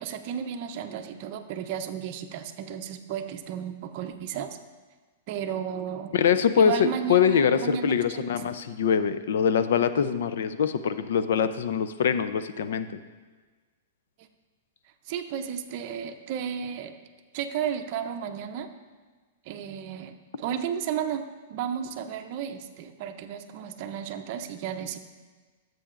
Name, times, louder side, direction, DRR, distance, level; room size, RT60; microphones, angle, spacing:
voice 1, 0.0-4.6 5.3-6.1 6.6-8.2 14.2-14.3 15.1-16.9 17.3-18.7 19.5-21.2 21.5-25.0, right 8 dB, 45° right, 5 dB, 0.6 m, -33 dB
voice 2, 6.1-13.0, left 7 dB, 75° left, 12 dB, 0.5 m, -24 dB
13.0 x 7.6 x 2.5 m, 1.4 s
hypercardioid pair, 140°, 0 cm